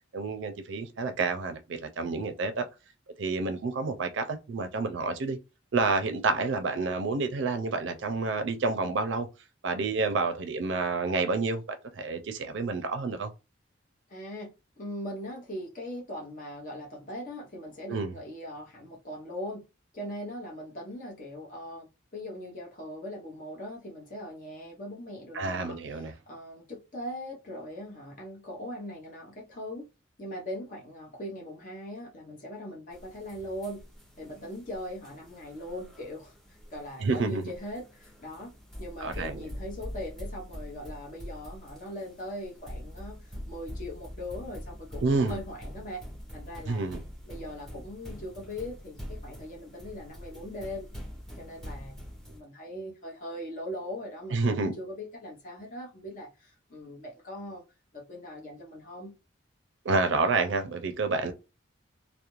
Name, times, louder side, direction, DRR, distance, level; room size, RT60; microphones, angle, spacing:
voice 1, 0.1-2.7 3.2-5.4 5.7-9.3 9.6-13.3 17.9-18.1 25.3-26.1 37.0-37.4 39.0-39.4 45.0-45.4 46.7-47.0 54.3-54.7 59.8-61.3, right 3 dB, 70° right, 0.4 m, -29 dB
voice 2, 14.1-14.5 14.8-19.6 19.9-29.9 30.2-33.8 34.2-38.5 38.8-46.0 46.3-46.9 47.2-50.9 51.4-52.0 52.3-57.6 57.9-59.1, left 1 dB, 40° left, 0.8 m, -40 dB
sound 1, 32.9-52.4, equal, 5° left, 0.7 m, -44 dB
2.4 x 2.1 x 2.9 m
head